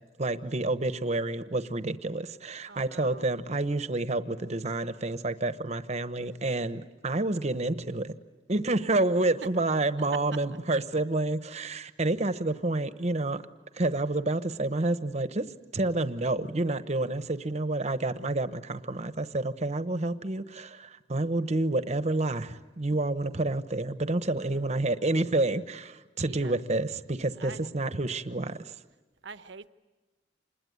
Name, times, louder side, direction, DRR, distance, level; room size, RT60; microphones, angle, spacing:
voice 1, 0.2-8.1 8.5-13.4 13.8-28.6, right 2 dB, 40° right, 12 dB, 1.0 m, -29 dB
voice 2, 2.7-3.2 24.4-24.6 26.3-26.6 27.4-27.7 29.2-29.7, right 4 dB, 75° right, 12 dB, 0.9 m, -45 dB
27.0 x 21.0 x 9.4 m, 1.2 s
head